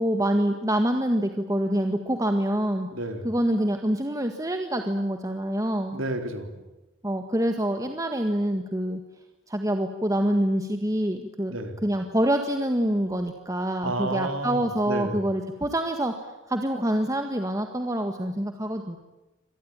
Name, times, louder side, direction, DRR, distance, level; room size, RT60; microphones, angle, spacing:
voice 1, 0.0-2.9 3.2-6.0 7.0-9.0 9.5-11.5 11.8-19.0, right 1 dB, 15° right, 5 dB, 1.7 m, -26 dB
voice 2, 2.9-3.3 5.9-6.6 11.5-11.8 13.8-14.6 14.9-15.2, right 1 dB, 85° right, 6 dB, 3.9 m, -30 dB
26.0 x 19.5 x 9.0 m, 1.0 s
head